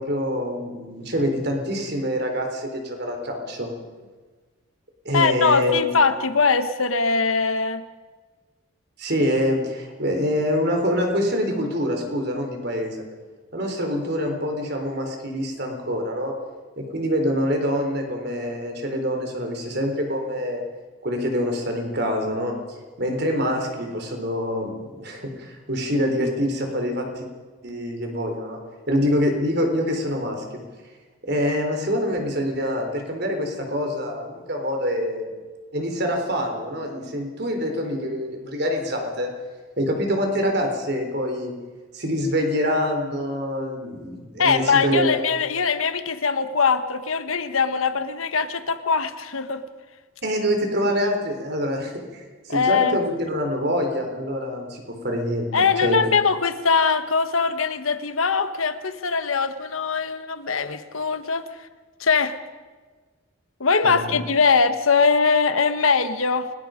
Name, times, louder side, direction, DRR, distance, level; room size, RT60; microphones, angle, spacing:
voice 1, 0.0-3.7 5.0-5.9 9.0-13.1 13.5-16.3 16.8-20.6 21.0-22.5 23.0-27.3 27.6-28.6 28.9-30.6 31.2-35.3 35.7-39.3 39.8-41.5 41.9-45.1 50.2-56.0 63.8-64.2, equal, 50° right, 3 dB, 4.0 m, -25 dB
voice 2, 5.1-7.8 44.4-49.6 52.5-53.0 55.5-61.7 62.0-62.4 63.6-66.5, left 5 dB, 85° left, 10 dB, 1.4 m, -21 dB
29.0 x 19.5 x 5.2 m, 1.4 s
head